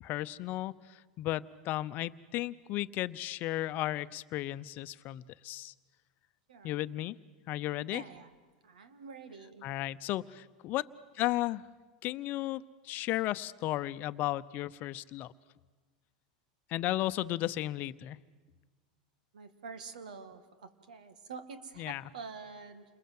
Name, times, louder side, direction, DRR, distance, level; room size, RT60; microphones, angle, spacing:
voice 1, 0.0-5.7 6.6-7.2 7.5-8.0 9.6-10.9 11.1-11.6 12.0-15.3 16.7-18.2 21.8-22.0, left 15 dB, 45° left, 14 dB, 0.8 m, -34 dB
voice 2, 7.9-8.3 8.6-9.7 17.1-17.3 19.3-22.8, right 5 dB, 90° right, 11 dB, 2.2 m, -47 dB
29.0 x 21.5 x 7.8 m, 1.4 s
hypercardioid pair, 115°, 4 cm